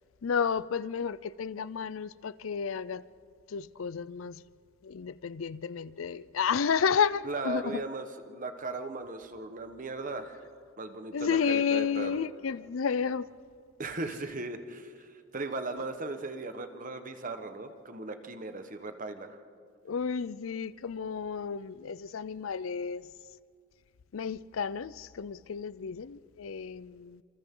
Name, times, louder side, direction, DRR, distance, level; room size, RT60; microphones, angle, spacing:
voice 1, 0.2-3.0 3.5-4.4 4.8-7.8 11.1-13.3 19.8-23.1 24.1-27.2, left 6 dB, 85° left, 0.5 m, -31 dB
voice 2, 7.2-10.4 10.8-12.2 13.8-19.4, right 2 dB, 40° right, 1.3 m, -37 dB
27.5 x 27.0 x 3.8 m
head